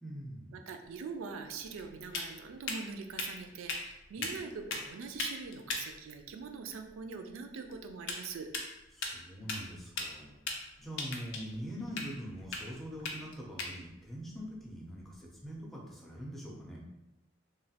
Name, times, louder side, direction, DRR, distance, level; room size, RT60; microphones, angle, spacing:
voice 1, 0.0-0.7 4.2-4.3 8.9-16.8, equal, ahead, -3 dB, 0.4 m, -44 dB
voice 2, 0.5-8.5, right 5 dB, 80° right, 6 dB, 0.3 m, -43 dB
sound 1, 0.9-15.6, left 3 dB, 65° left, 0.5 m, -42 dB
3.1 x 2.2 x 2.8 m, 0.96 s
head